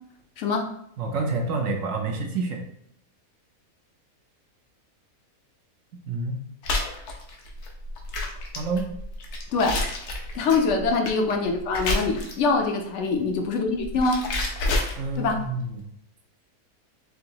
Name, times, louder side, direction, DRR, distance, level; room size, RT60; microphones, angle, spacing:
voice 1, 0.4-0.7 9.5-10.0 10.3-14.2 15.2-15.4, left 3 dB, 65° left, 4 dB, 0.8 m, -24 dB
voice 2, 1.0-2.6 6.1-6.4 8.6-8.9 15.0-15.8, right 3 dB, 70° right, 2 dB, 0.9 m, -28 dB
sound 1, 6.6-12.6 13.6-15.4, left 2 dB, 85° left, 1.2 m, -29 dB
4.6 x 2.6 x 2.8 m, 0.71 s
omnidirectional pair, 1.6 m